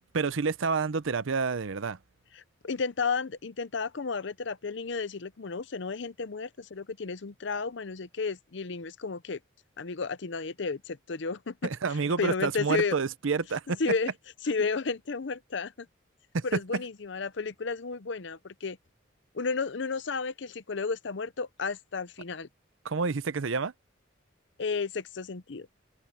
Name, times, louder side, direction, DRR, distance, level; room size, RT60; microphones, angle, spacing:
voice 1, 0.1-2.0 11.6-13.8 16.3-16.8 22.8-23.7, right 4 dB, 80° right, 0.6 m, -29 dB
voice 2, 2.4-9.4 9.8-11.7 12.2-13.0 13.8-14.1 14.4-15.9 16.4-18.8 19.3-22.5 24.6-25.7, left 4 dB, 60° left, 0.7 m, -32 dB
head